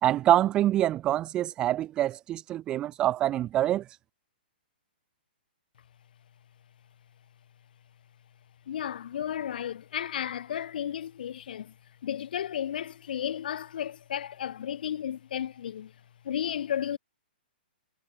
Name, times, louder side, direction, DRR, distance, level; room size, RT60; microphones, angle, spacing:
voice 1, 0.0-3.8, right 13 dB, 15° right, 0.4 m, -25 dB
voice 2, 8.7-11.7 12.0-15.9 16.2-17.0, left 9 dB, 55° left, 0.8 m, -33 dB
hypercardioid pair, 170°, 6 cm